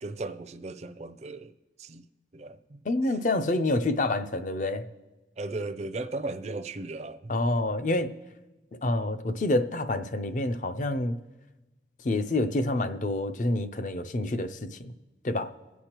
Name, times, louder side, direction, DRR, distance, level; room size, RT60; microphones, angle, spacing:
voice 1, 0.0-1.5 1.8-2.0 2.3-2.8 5.4-7.3, right 2 dB, 40° right, 0.5 m, -36 dB
voice 2, 2.9-4.8 7.3-8.1 8.8-11.2 12.0-14.9 15.2-15.5, left 2 dB, 45° left, 0.5 m, -27 dB
23.0 x 8.2 x 2.9 m
head